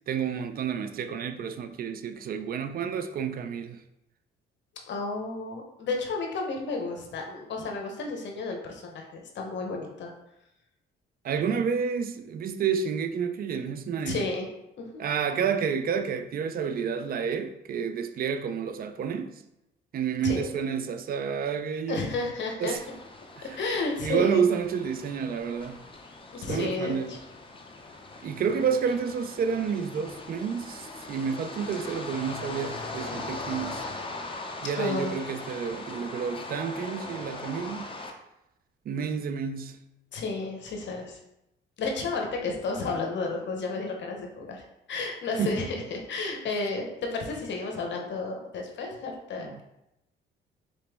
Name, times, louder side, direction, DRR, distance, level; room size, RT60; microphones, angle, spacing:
voice 1, 0.1-3.8 11.2-14.2 15.0-19.4 19.9-22.0 22.6-22.8 23.4-23.5 24.0-25.8 26.5-27.1 28.2-33.8 34.6-37.9 38.9-39.8 45.4-45.5 49.4-49.6, right 6 dB, 50° right, 0.4 m, -29 dB
voice 2, 4.9-10.1 14.1-14.5 14.8-15.0 20.2-20.5 21.9-22.8 23.4-24.5 26.3-27.2 34.7-35.2 40.1-41.2 41.8-49.6, left 3 dB, 65° left, 0.8 m, -32 dB
sound 1, 22.8-38.1, left 2 dB, 25° left, 0.6 m, -40 dB
4.0 x 2.9 x 3.4 m
cardioid pair, 90°, 20 cm